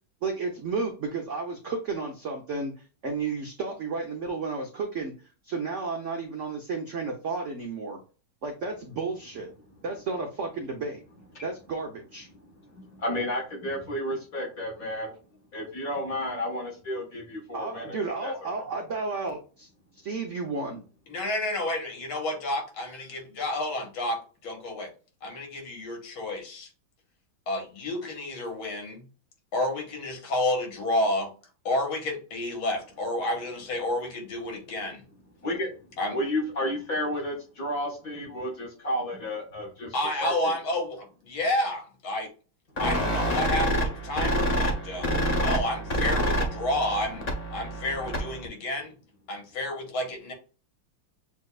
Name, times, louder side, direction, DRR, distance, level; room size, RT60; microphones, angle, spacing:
voice 1, 0.2-2.7 3.0-5.1 5.4-8.0 8.4-9.5 9.8-11.0 11.4-12.3 17.5-19.7 19.9-20.8, right 4 dB, 90° right, 2 dB, 0.6 m, -32 dB
voice 2, 12.4-15.2 15.5-18.3 35.4-35.8 36.1-40.6, left 1 dB, 45° left, -3 dB, 1.8 m, -32 dB
voice 3, 21.1-24.9 25.2-26.7 27.5-29.0 29.5-31.3 31.7-35.0 36.0-36.2 39.9-42.3 42.8-48.9 49.3-50.3, left 1 dB, 75° left, 3 dB, 2.2 m, -30 dB
sound 1, 42.8-48.5, equal, 90° left, 0.3 m, -27 dB
7.0 x 2.7 x 2.3 m, 0.36 s
omnidirectional pair, 2.3 m